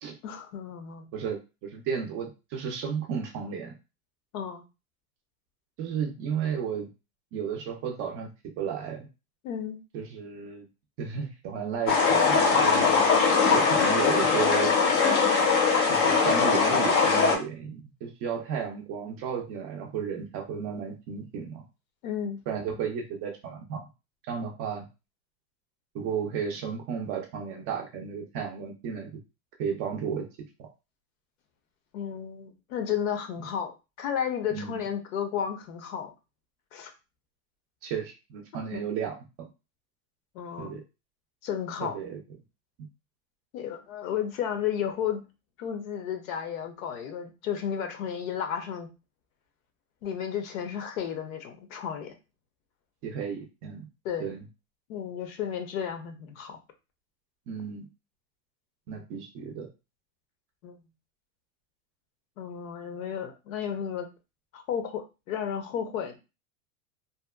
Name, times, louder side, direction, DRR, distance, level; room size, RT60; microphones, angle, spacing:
voice 1, 0.2-1.1 4.3-4.6 9.4-9.8 22.0-22.4 31.9-33.7 34.0-36.1 36.7-36.9 38.7-38.8 40.3-40.8 41.4-42.0 43.5-45.2 45.6-48.9 50.0-52.1 54.0-54.3 54.9-56.6 60.6-60.8 62.4-64.1 64.5-66.2, left 8 dB, 70° left, 6 dB, 0.8 m, -33 dB
voice 2, 1.1-3.7 5.8-6.9 7.3-8.3 8.6-9.1 9.9-10.7 11.0-12.8 13.5-14.7 15.9-21.6 22.5-23.8 24.3-24.9 25.9-29.1 29.6-30.3 30.6-30.7 34.5-34.8 37.8-39.5 40.6-40.8 41.8-42.2 53.0-53.9 54.2-54.4 57.5-57.8 58.9-59.7, right 7 dB, 35° right, 2 dB, 0.4 m, -33 dB
sound 1, 11.9-17.4, left 5 dB, 35° left, 0.5 m, -21 dB
2.8 x 2.1 x 2.2 m, 0.28 s
supercardioid pair, 145°, 42 cm